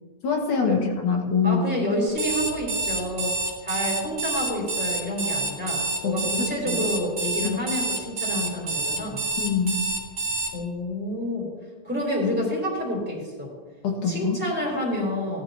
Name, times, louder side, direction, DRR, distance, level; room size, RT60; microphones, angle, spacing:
voice 1, 0.2-1.6 6.0-6.8 7.4-7.6 9.4-9.8 13.8-14.4, left 5 dB, 65° left, 1 dB, 2.9 m, -25 dB
voice 2, 1.4-9.2 10.5-11.5 11.8-13.5 14.0-15.4, left 1 dB, 5° right, -4 dB, 3.4 m, -29 dB
Alarm, 2.1-10.5, right 3 dB, 40° right, 2.5 m, -28 dB
18.5 x 12.0 x 2.9 m, 1.5 s
omnidirectional pair, 4.1 m